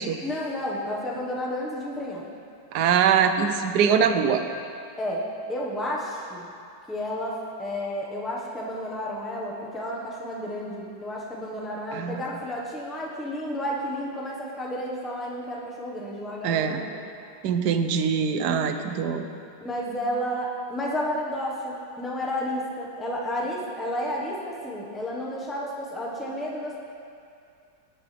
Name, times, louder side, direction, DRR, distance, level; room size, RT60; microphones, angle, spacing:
voice 1, 0.2-2.3 5.0-6.5 6.9-17.0 19.6-26.8, equal, ahead, -3 dB, 1.0 m, -31 dB
voice 2, 2.7-4.4 11.9-12.2 16.4-16.8 17.4-19.2, right 7 dB, 70° right, 8 dB, 1.2 m, -23 dB
18.5 x 7.7 x 3.4 m, 2.5 s
omnidirectional pair, 2.0 m